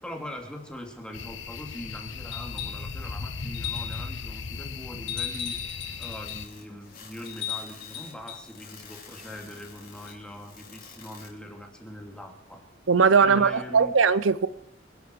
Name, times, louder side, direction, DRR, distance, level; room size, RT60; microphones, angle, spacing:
voice 1, 0.0-5.6 6.0-12.7 13.2-13.9, equal, 5° left, 2.7 m, -42 dB
sound 1, 1.1-6.5, left 4 dB, 70° left, 0.9 m, -37 dB
sound 2, 2.3-2.9 3.5-4.1 5.1-6.5 7.3-8.5 10.1-10.2, left 9 dB, 90° left, 6.3 m, -36 dB
sound 3, 6.2-11.3, left 5 dB, 50° left, 4.3 m, -49 dB
voice 2, 12.9-14.5, right 5 dB, 90° right, 0.7 m, -20 dB
26.0 x 11.5 x 4.7 m
head